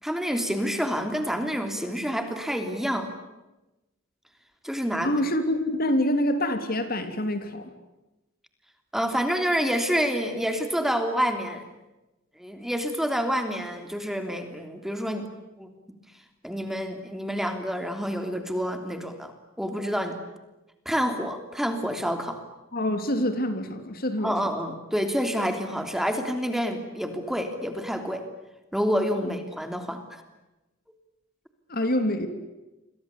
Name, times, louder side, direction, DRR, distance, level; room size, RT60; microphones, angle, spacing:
voice 1, 0.0-3.1 4.6-5.1 8.9-11.6 12.4-15.3 15.6-15.7 16.4-19.3 19.6-20.2 20.8-22.4 24.2-28.3 28.7-30.2, equal, ahead, 7 dB, 3.2 m, -28 dB
voice 2, 5.0-7.7 22.7-24.6 29.2-29.3 31.7-32.3, left 1 dB, 50° left, 9 dB, 3.3 m, -26 dB
30.0 x 24.0 x 8.4 m, 1.0 s
head